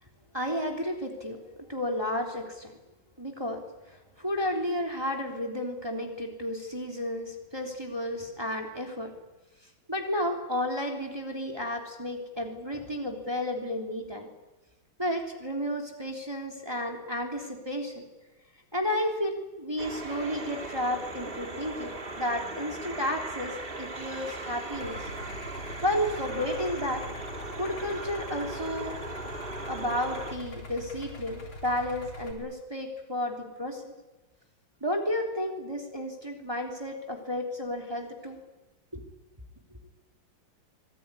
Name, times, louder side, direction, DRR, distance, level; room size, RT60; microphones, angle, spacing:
voice 1, 0.3-1.4 1.7-2.7 3.2-3.6 4.2-9.1 9.9-14.3 15.0-18.0 18.7-23.5 23.8-25.0 25.8-27.0 27.6-28.9 29.7-33.9 34.8-38.4 38.9-39.1, left 1 dB, 10° right, 1 dB, 3.4 m, -32 dB
sound 1, 19.8-30.4, right 2 dB, 25° right, 2.2 m, -38 dB
Idling, 24.7-32.3, left 2 dB, 70° left, 5.0 m, -43 dB
25.0 x 19.0 x 9.9 m, 1.1 s
omnidirectional pair, 2.4 m